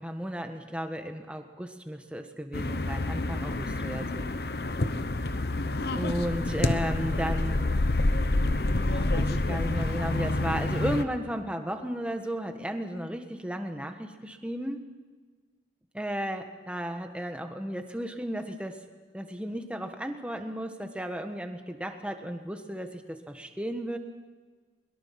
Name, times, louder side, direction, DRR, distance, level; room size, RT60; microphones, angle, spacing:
voice 1, 0.0-4.3 5.9-7.8 8.9-14.8 15.9-18.8 19.1-24.0, equal, 5° right, 5 dB, 1.4 m, -34 dB
sound 1, 2.5-11.0, left 2 dB, 60° left, 1.0 m, -28 dB
22.0 x 22.0 x 5.9 m, 1.4 s
head